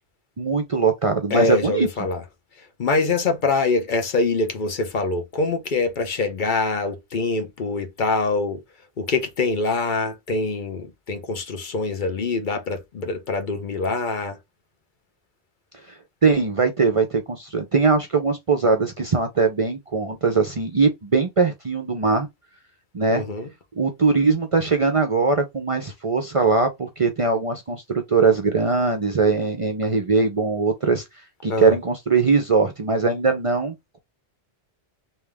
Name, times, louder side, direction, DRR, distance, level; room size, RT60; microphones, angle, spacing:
voice 1, 0.4-1.9 16.2-22.3 22.9-23.2 23.8-31.0 31.4-34.0, right 4 dB, 40° right, 0.5 m, -21 dB
voice 2, 1.3-2.2 2.8-8.6 9.0-14.4 23.1-23.5 31.5-31.8, left 3 dB, 55° left, 0.8 m, -24 dB
3.3 x 2.8 x 3.3 m
omnidirectional pair, 1.1 m